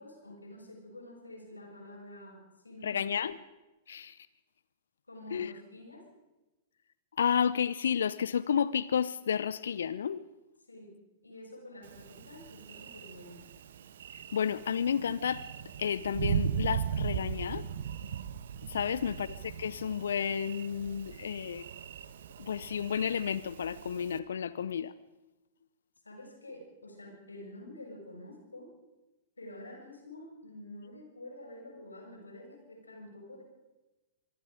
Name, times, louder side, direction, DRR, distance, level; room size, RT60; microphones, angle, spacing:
voice 1, 0.0-3.0 5.1-6.1 10.7-11.0 11.2-13.4 18.8-19.3 26.0-28.7 29.4-33.4, left 1 dB, 90° left, 1 dB, 7.1 m, -48 dB
voice 2, 2.8-3.3 3.9-4.2 5.3-5.5 7.2-10.2 14.1-15.4 15.8-17.6 18.7-21.6 22.4-24.9, left 7 dB, 70° left, 17 dB, 0.7 m, -31 dB
Thunder, 11.8-24.2, right 8 dB, 65° right, 1.4 m, -38 dB
25.5 x 23.0 x 5.1 m, 1.1 s
figure-of-eight pair, 105°, 0 cm